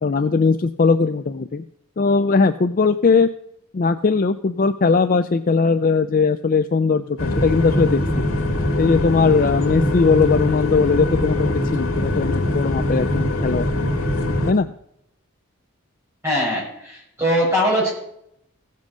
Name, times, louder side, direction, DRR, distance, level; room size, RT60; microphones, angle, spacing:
voice 1, 0.0-1.6 2.0-3.3 3.7-8.0 8.8-13.7 14.5-14.7, left 4 dB, 40° left, 10 dB, 0.4 m, -19 dB
sound 1, 7.2-14.5, left 1 dB, 70° left, 2.1 m, -22 dB
voice 2, 16.2-17.9, equal, 10° right, -6 dB, 6.8 m, -21 dB
16.0 x 7.5 x 6.2 m, 0.75 s
head